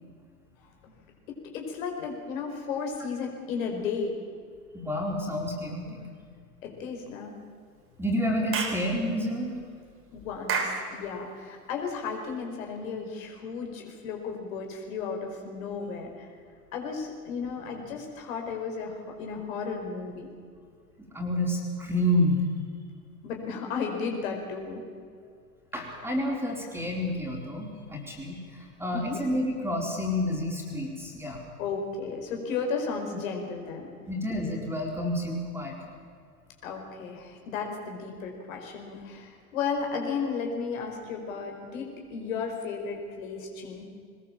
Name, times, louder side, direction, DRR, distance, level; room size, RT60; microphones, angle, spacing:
voice 1, 1.3-4.2 6.6-7.3 10.1-16.3 16.7-20.3 23.2-24.8 28.9-29.2 31.6-33.9 36.6-43.8, left 5 dB, 55° left, 2 dB, 5.0 m, -34 dB
voice 2, 4.7-6.0 8.0-9.6 21.1-22.4 25.7-31.4 34.1-35.7, left 1 dB, 5° right, -1 dB, 4.7 m, -29 dB
Clapping / Chirp tweet, 8.5-8.8 10.5-10.8, right 5 dB, 30° right, 4.0 m, -28 dB
22.5 x 20.5 x 7.5 m, 2.1 s
figure-of-eight pair, 100°, 47 cm